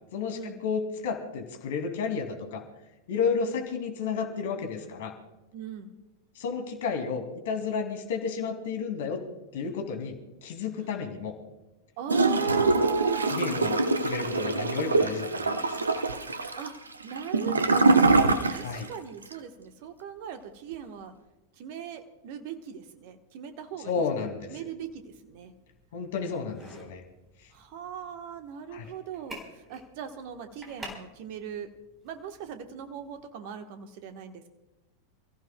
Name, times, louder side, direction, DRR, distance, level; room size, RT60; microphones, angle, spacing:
voice 1, 0.1-2.6 3.1-5.1 6.4-9.2 9.5-10.2 10.4-11.4 13.3-16.0 18.6-18.9 23.8-24.6 25.9-27.0 28.7-28.9, left 5 dB, 55° left, 4 dB, 2.4 m, -32 dB
voice 2, 5.5-6.0 12.0-13.4 16.6-16.7 17.0-18.2 18.5-21.1 21.6-25.5 27.5-31.7 32.0-34.5, right 8 dB, 50° right, 8 dB, 1.1 m, -39 dB
Gurgling / Toilet flush, 12.1-18.9 19.2-19.3, right 3 dB, 75° right, 0.9 m, -24 dB
sound 1, 24.8-33.3, right 1 dB, 15° right, 4.1 m, -50 dB
28.5 x 15.0 x 2.2 m, 1.0 s
figure-of-eight pair, 90°, 0 cm